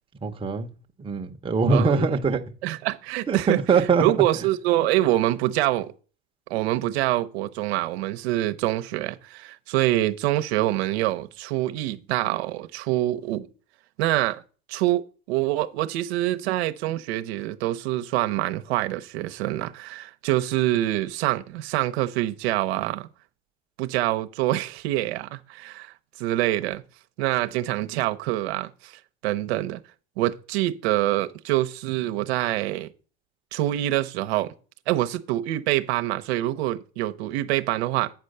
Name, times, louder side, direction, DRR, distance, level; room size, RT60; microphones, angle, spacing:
voice 1, 0.2-0.7 1.0-2.5 3.3-4.2, right 4 dB, 15° right, 0.9 m, -22 dB
voice 2, 1.7-2.1 2.6-3.6 4.0-5.9 6.5-13.5 14.0-14.4 14.7-23.1 23.8-26.8 27.2-28.9 29.2-29.8 30.2-32.9 33.5-34.5 34.9-38.1, right 15 dB, 80° right, 0.8 m, -25 dB
9.0 x 4.5 x 6.6 m
supercardioid pair, 125°, 32 cm